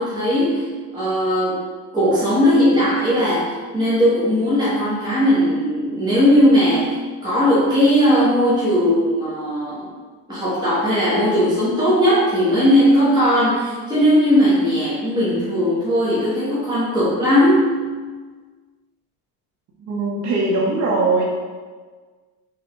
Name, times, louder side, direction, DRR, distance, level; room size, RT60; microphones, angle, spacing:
voice 1, 0.0-1.6 1.9-6.9 7.2-9.9 10.3-17.8, equal, 10° right, -11 dB, 1.2 m, -18 dB
voice 2, 19.8-21.2, right 3 dB, 45° right, -3 dB, 0.8 m, -20 dB
3.7 x 2.7 x 4.4 m, 1.4 s
cardioid pair, 130°, 39 cm